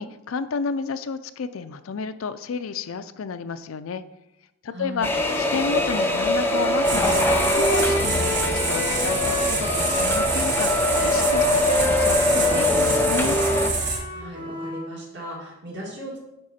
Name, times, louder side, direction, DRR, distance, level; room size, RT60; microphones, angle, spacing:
voice 1, 0.0-4.0 4.6-13.4, left 5 dB, 80° left, 12 dB, 0.4 m, -31 dB
voice 2, 4.7-5.1 14.1-16.2, right 1 dB, 55° right, -3 dB, 2.2 m, -37 dB
sound 1, 5.0-13.7, left 1 dB, 10° left, 0.6 m, -23 dB
Wind instrument woodwind instrument, 6.5-14.9, left 1 dB, 25° right, 1.0 m, -29 dB
sound 2, 6.8-14.0, right 3 dB, 40° right, 1.6 m, -27 dB
9.9 x 3.7 x 4.2 m, 0.94 s
head